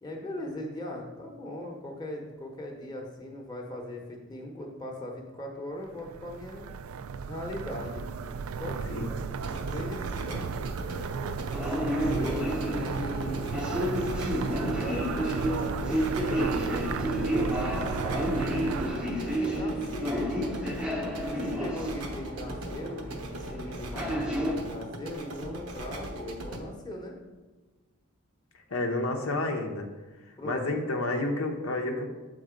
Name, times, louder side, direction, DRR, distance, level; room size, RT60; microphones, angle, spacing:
voice 1, 0.0-6.7 7.3-8.1 8.6-10.7 12.0-13.7 14.3-18.4 18.9-20.2 21.4-27.2 30.4-30.7, left 1 dB, 20° left, -1 dB, 0.9 m, -39 dB
sound 1, 5.9-19.3, right 5 dB, 70° right, 0.3 m, -35 dB
sound 2, 9.3-26.6, right 1 dB, 85° right, 1.0 m, -40 dB
sound 3, 11.5-24.6, equal, 5° right, 0.6 m, -31 dB
voice 2, 28.5-29.9 30.2-32.1, left 2 dB, 70° left, 3 dB, 0.8 m, -30 dB
7.5 x 3.9 x 5.0 m, 1.2 s
head